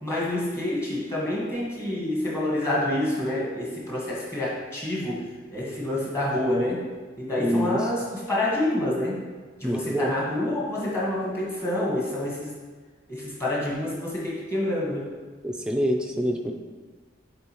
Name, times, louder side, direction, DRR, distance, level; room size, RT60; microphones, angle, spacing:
voice 1, 0.0-6.8 7.2-9.2 9.6-12.5 13.1-15.1, left 1 dB, 15° left, -6 dB, 1.4 m, -27 dB
voice 2, 7.4-7.9 9.6-10.1 15.4-16.5, equal, 5° right, 2 dB, 0.4 m, -26 dB
9.1 x 3.8 x 3.0 m, 1.4 s
head